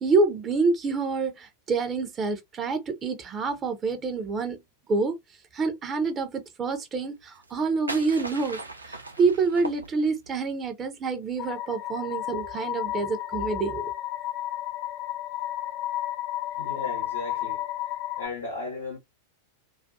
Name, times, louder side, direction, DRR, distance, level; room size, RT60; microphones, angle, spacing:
voice 1, 0.0-4.6 4.9-5.2 5.5-8.6 8.9-13.9, right 4 dB, 25° right, 0.4 m, -27 dB
sound 1, 7.3-10.4, right 2 dB, 80° right, 0.4 m, -38 dB
sound 2, 11.4-18.3, left 13 dB, 40° left, 0.4 m, -32 dB
voice 2, 16.6-19.0, left 3 dB, 80° left, 0.8 m, -36 dB
2.3 x 2.2 x 2.5 m
figure-of-eight pair, 90°, 0 cm